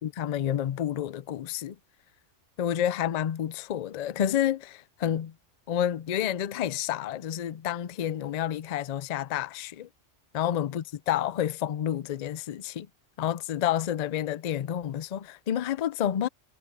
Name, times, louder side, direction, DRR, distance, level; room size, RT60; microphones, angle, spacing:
voice 1, 0.0-1.8 2.6-5.3 5.7-9.9 10.3-12.9 13.2-16.3, left 10 dB, 65° left, 0.4 m, -29 dB
omnidirectional pair, 1.3 m